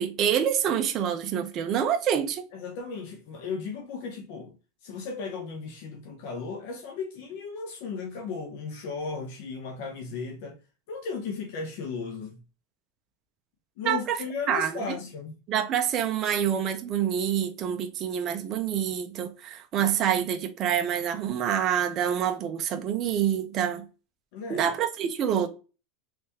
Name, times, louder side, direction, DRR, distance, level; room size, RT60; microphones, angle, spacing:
voice 1, 0.0-2.4 13.9-14.2 14.5-15.0 15.5-23.8 24.5-25.5, right 9 dB, 35° right, 0.5 m, -27 dB
voice 2, 2.5-4.6 4.8-10.6 10.9-12.4 13.8-15.4 24.3-24.7, left 5 dB, 60° left, 0.8 m, -35 dB
3.3 x 3.3 x 2.8 m
supercardioid pair, 150°, 0 cm